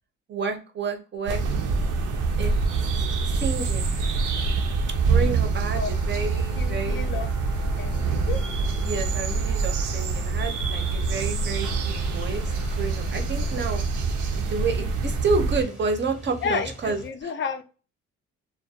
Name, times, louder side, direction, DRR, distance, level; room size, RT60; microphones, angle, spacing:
voice 1, 0.3-1.4 2.4-2.5 3.0-3.9 4.9-7.1 8.8-13.8 14.4-17.3, right 4 dB, 40° right, 0.6 m, -30 dB
sound 1, 1.3-15.6, right 4 dB, 80° right, 0.5 m, -25 dB
sound 2, 5.7-13.7, left 6 dB, 85° left, 0.6 m, -47 dB
voice 2, 6.5-7.3 7.6-8.4 16.4-17.6, left 6 dB, 40° left, 0.4 m, -31 dB
sound 3, 11.8-17.1, right 1 dB, 5° right, 0.7 m, -42 dB
2.4 x 2.1 x 2.6 m
cardioid pair, 90°, 30 cm